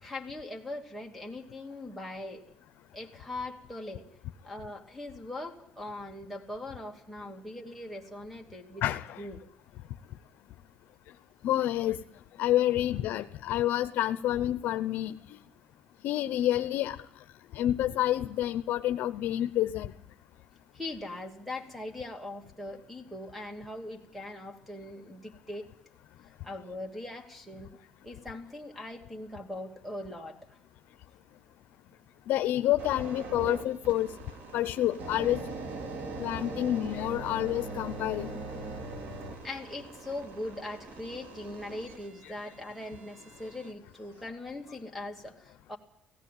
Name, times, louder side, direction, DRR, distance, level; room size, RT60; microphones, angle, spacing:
voice 1, 0.0-2.4 2.9-4.0 4.4-8.8 9.2-9.4 20.7-25.7 26.4-27.7 28.0-30.6 39.4-45.8, left 2 dB, ahead, 5 dB, 2.6 m, -41 dB
voice 2, 8.8-9.3 11.4-12.0 12.4-15.4 16.0-17.0 17.5-19.9 32.3-34.1 34.5-35.6 36.2-38.4, left 13 dB, 70° left, 9 dB, 0.8 m, -28 dB
sound 1, 32.8-43.7 44.3-44.5, right 3 dB, 60° right, 2.7 m, -41 dB
17.5 x 16.5 x 9.3 m, 0.75 s
cardioid pair, 145°, 3 cm